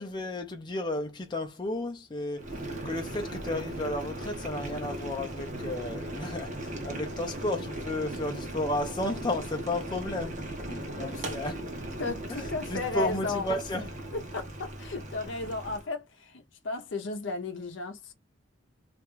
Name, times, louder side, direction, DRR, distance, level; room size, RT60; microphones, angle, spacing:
voice 1, 0.0-2.5 2.8-10.4 10.9-11.6 12.3-12.4 12.7-13.9, left 1 dB, 25° left, 0.5 m, -33 dB
Boiling, 2.4-15.9, right 1 dB, 40° right, 0.7 m, -38 dB
voice 2, 10.7-11.2 12.0-13.5 14.1-18.1, left 3 dB, 70° left, 0.6 m, -35 dB
2.5 x 2.2 x 3.0 m
head